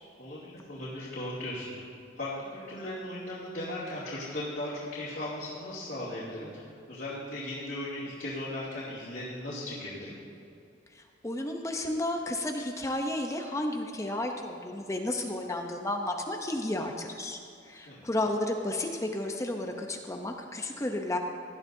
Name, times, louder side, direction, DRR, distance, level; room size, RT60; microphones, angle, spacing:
voice 1, 0.2-1.7 2.2-10.2 17.8-18.0, left 1 dB, 60° left, -10 dB, 2.8 m, -37 dB
voice 2, 10.9-17.4 17.7-21.2, left 1 dB, 15° left, 3 dB, 0.7 m, -32 dB
18.0 x 12.0 x 2.7 m, 2.6 s
head